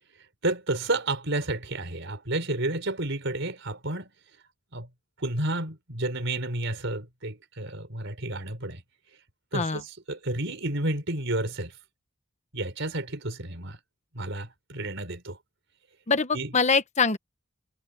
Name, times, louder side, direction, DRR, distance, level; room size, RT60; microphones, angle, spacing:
voice 1, 0.4-4.1 4.7-4.9 5.2-8.8 9.5-11.7 12.5-13.8 14.1-15.4 16.3-16.5, right 2 dB, 65° right, 4.7 m, -31 dB
voice 2, 16.1-17.2, left 4 dB, 35° left, 1.1 m, -24 dB
head